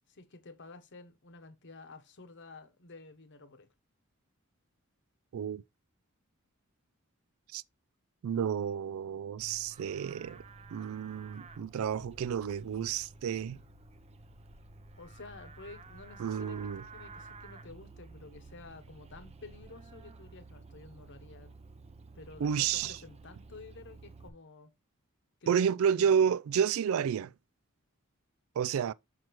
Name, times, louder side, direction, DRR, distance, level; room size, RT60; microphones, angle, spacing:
voice 1, 0.1-3.7 15.0-21.6 22.1-24.7 25.4-25.7 26.0-26.3, left 3 dB, 55° left, 1.0 m, -51 dB
voice 2, 8.2-10.4 10.7-13.6 16.2-16.8 22.4-22.9 25.5-27.3 28.6-28.9, right 8 dB, 65° right, 0.3 m, -30 dB
Livestock farm animals working animals, 9.4-24.3, right 3 dB, 30° right, 0.6 m, -52 dB
6.2 x 6.0 x 3.0 m
head